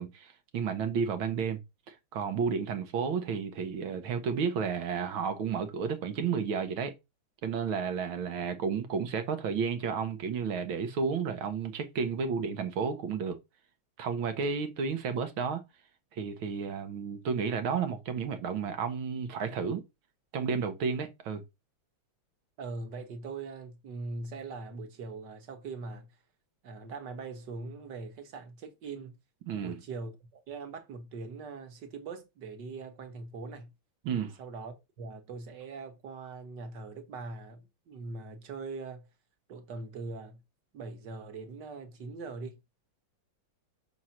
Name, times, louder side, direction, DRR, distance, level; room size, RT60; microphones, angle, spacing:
voice 1, 0.0-1.6 1.9-6.9 7.4-13.4 14.0-15.6 16.1-19.8 20.3-21.4 29.5-29.8 34.1-34.4, right 6 dB, 75° right, 2.0 m, -32 dB
voice 2, 22.6-26.1 26.6-29.2 29.6-33.7 34.4-39.1 39.5-40.4 40.7-42.6, right 3 dB, 60° right, 1.9 m, -41 dB
6.3 x 4.6 x 5.7 m
omnidirectional pair, 2.2 m